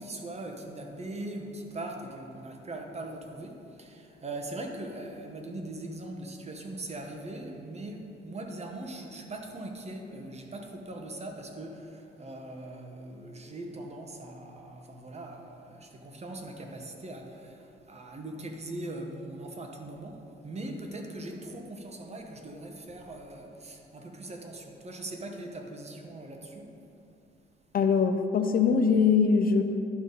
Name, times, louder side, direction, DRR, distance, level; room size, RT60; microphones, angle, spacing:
voice 1, 0.0-26.7, right 1 dB, 35° right, 3 dB, 1.0 m, -41 dB
voice 2, 27.7-29.6, left 5 dB, 45° left, 7 dB, 0.5 m, -22 dB
11.0 x 4.0 x 5.3 m, 2.7 s
cardioid pair, 90°, 20 cm